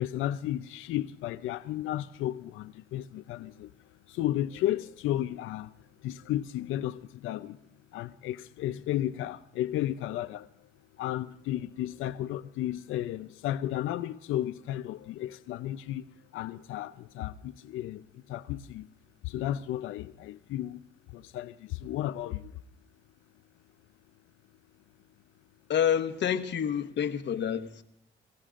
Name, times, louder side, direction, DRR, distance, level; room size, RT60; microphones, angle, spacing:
voice 1, 0.0-7.6 7.9-10.7 11.0-16.1 16.3-18.9 19.2-20.8 21.1-22.6, left 13 dB, 90° left, 0.5 m, -33 dB
voice 2, 25.7-27.8, left 9 dB, 65° left, 1.1 m, -28 dB
24.0 x 15.5 x 2.5 m
cardioid pair, 90°, 20 cm